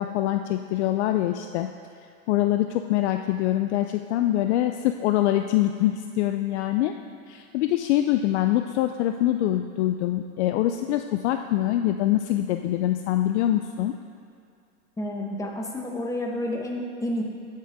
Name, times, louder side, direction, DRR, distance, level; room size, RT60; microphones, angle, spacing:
voice 1, 0.0-1.7 2.3-6.9 7.3-13.9, left 13 dB, 50° left, 7 dB, 0.5 m, -24 dB
voice 2, 15.0-17.2, left 1 dB, 5° left, 0 dB, 1.2 m, -30 dB
14.5 x 7.5 x 3.6 m, 2.4 s
hypercardioid pair, 125°, 45 cm